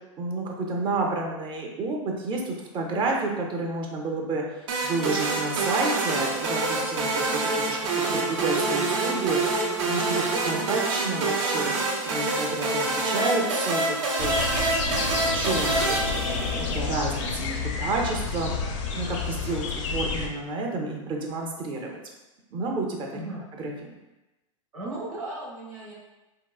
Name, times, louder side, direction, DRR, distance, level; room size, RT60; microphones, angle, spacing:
voice 1, 0.2-7.8 8.1-11.7 12.0-16.0 16.4-18.6 18.9-19.6 19.9-21.9 22.5-23.2 23.6-23.7, right 3 dB, 30° right, 0 dB, 0.5 m, -30 dB
sound 1, 4.7-16.9, right 3 dB, 65° right, 0.6 m, -26 dB
voice 2, 10.5-10.8 23.1-23.4 24.7-25.9, right 2 dB, 90° right, -5 dB, 1.0 m, -36 dB
sound 2, 14.2-20.3, left 4 dB, 60° left, 0.5 m, -29 dB
3.6 x 2.1 x 2.3 m, 1.0 s
hypercardioid pair, 110°, 17 cm